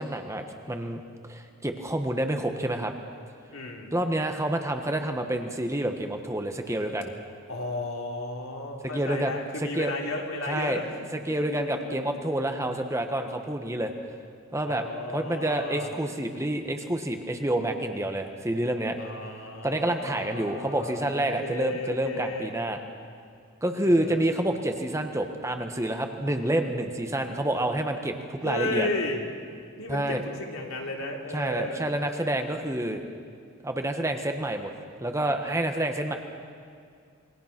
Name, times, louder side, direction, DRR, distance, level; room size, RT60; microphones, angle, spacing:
voice 1, 0.0-2.9 3.9-7.1 8.8-9.3 9.6-9.9 10.4-10.8 11.3-13.9 14.5-19.0 19.6-22.8 23.6-28.9 29.9-30.2 31.3-33.0 33.6-34.7 35.0-36.2, right 1 dB, 15° right, 5 dB, 1.4 m, -28 dB
voice 2, 3.5-3.9 7.5-10.9 11.1-12.0 14.7-15.9 19.0-22.5 23.8-24.3 28.4-29.2 29.8-31.8, left 2 dB, 80° left, 0 dB, 3.4 m, -34 dB
27.5 x 22.0 x 6.1 m, 2.3 s
head